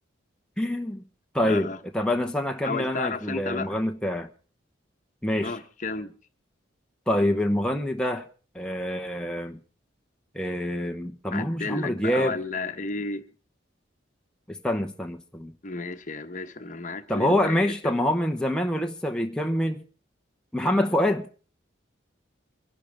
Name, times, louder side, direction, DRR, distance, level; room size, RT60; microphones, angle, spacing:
voice 1, 0.6-1.1 1.3-4.3 5.2-5.5 7.1-8.3 8.5-9.6 10.3-12.4 14.5-15.5 17.1-19.8 20.5-21.3, left 1 dB, 5° left, 0.9 m, -26 dB
voice 2, 1.5-1.8 2.6-3.7 5.4-6.1 11.3-13.2 15.6-17.9, left 3 dB, 40° left, 1.1 m, -32 dB
25.0 x 11.5 x 3.5 m
head